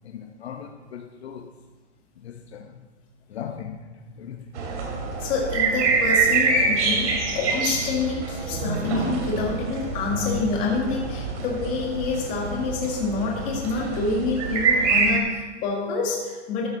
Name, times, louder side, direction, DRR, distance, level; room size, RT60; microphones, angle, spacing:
voice 1, 0.0-1.5 2.2-2.8 3.3-4.6, left 8 dB, 60° left, 1.0 m, -39 dB
sound 1, 4.5-15.2, right 4 dB, 75° right, 2.7 m, -25 dB
voice 2, 5.2-16.7, left 3 dB, 20° left, 1.9 m, -27 dB
13.5 x 8.0 x 4.1 m
hypercardioid pair, 165°, 36 cm